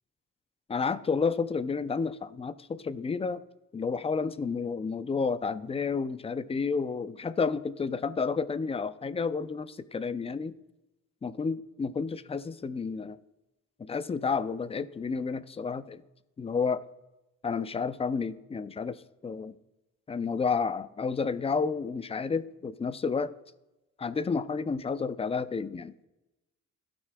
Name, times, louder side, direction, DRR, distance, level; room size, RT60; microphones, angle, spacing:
voice 1, 0.7-3.4 3.7-10.5 11.2-13.2 13.8-16.0 16.4-16.9 17.4-19.5 20.1-23.3 24.0-25.9, left 5 dB, 20° left, 14 dB, 0.4 m, -31 dB
15.0 x 6.1 x 2.2 m, 0.98 s
cardioid pair, 90°, 30 cm